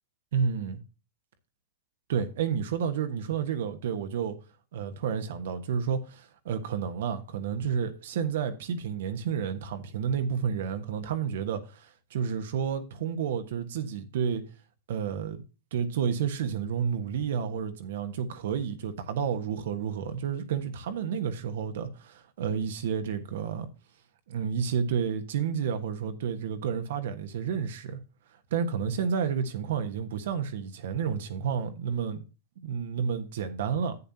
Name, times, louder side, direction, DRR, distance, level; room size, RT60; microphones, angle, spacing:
voice 1, 0.3-0.8 2.1-4.4 4.7-14.4 14.9-15.4 15.7-23.7 24.3-28.0 28.5-32.2 32.6-34.0, right 7 dB, 70° right, 1.3 m, -30 dB
11.0 x 8.4 x 2.8 m
hypercardioid pair, 105°, 0 cm